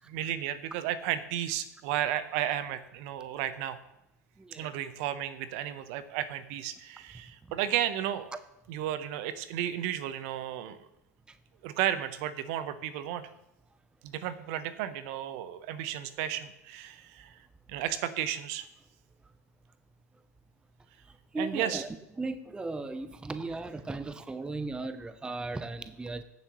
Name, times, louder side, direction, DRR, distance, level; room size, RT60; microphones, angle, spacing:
voice 1, 0.1-3.8 4.5-8.4 8.7-10.8 11.6-13.2 14.0-17.4 17.7-18.7 21.4-21.8, right 11 dB, 55° right, 13 dB, 0.8 m, -33 dB
voice 2, 4.4-4.7 11.3-11.4 21.3-21.9 22.2-26.2, right 3 dB, 10° right, 11 dB, 0.6 m, -36 dB
15.5 x 7.2 x 3.0 m, 0.87 s
hypercardioid pair, 85°, 9 cm